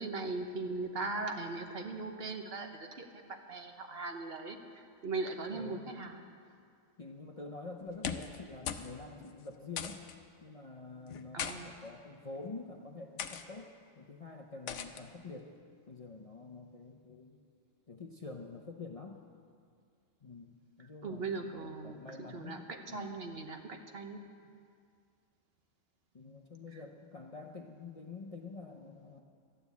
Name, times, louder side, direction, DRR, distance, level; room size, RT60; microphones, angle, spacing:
voice 1, 0.0-4.6 5.0-6.2 11.3-11.8 21.0-24.2, right 3 dB, 50° right, 4 dB, 1.2 m, -39 dB
voice 2, 5.5-5.9 7.0-10.0 10.4-15.6 15.9-17.4 17.9-19.2 20.2-23.1 26.1-29.2, left 3 dB, 35° left, 2 dB, 0.6 m, -47 dB
sound 1, 7.9-8.4 8.7-8.9 9.2-9.3 9.8-10.2 11.1-11.6 12.3-12.6 13.2-13.4 14.7-15.0, left 8 dB, 70° left, 1.0 m, -39 dB
12.5 x 9.4 x 8.2 m, 2.2 s
omnidirectional pair, 1.3 m